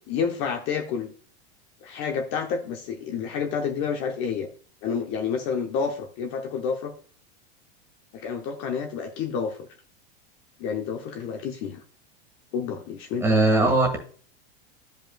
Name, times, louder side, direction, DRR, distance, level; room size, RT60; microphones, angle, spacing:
voice 1, 0.1-1.1 1.8-4.5 4.8-6.9 8.1-9.6 10.6-11.8 12.5-13.3, left 6 dB, 40° left, 4 dB, 0.8 m, -29 dB
voice 2, 13.2-14.0, right 2 dB, 10° right, 2 dB, 1.5 m, -19 dB
12.0 x 5.3 x 2.2 m, 0.44 s
supercardioid pair, 155°, 32 cm